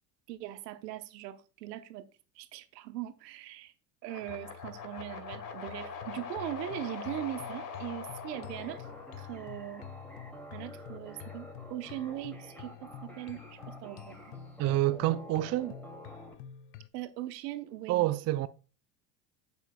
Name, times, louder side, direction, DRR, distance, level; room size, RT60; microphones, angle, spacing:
voice 1, 0.3-2.0 2.4-3.7 4.0-8.9 9.2-9.8 10.5-14.2 16.9-18.0, right 13 dB, 75° right, 1.0 m, -40 dB
sound 1, 4.0-10.2, left 5 dB, 40° left, 1.8 m, -43 dB
sound 2, 4.2-16.9, left 10 dB, 75° left, 0.7 m, -49 dB
sound 3, 8.3-16.3, equal, 5° left, 2.6 m, -49 dB
voice 2, 14.6-15.8 17.9-18.5, right 15 dB, 35° right, 0.4 m, -28 dB
8.3 x 8.2 x 2.3 m
hypercardioid pair, 80°, 49 cm